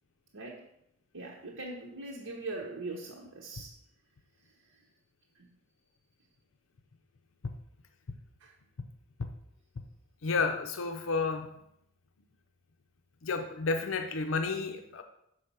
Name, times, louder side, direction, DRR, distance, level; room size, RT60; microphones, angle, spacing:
voice 1, 1.1-3.7 8.4-8.5, right 2 dB, 85° right, -3 dB, 1.2 m, -41 dB
voice 2, 10.2-11.6 13.2-15.0, left 4 dB, 70° left, 6 dB, 0.5 m, -31 dB
6.7 x 5.0 x 5.6 m, 0.77 s
head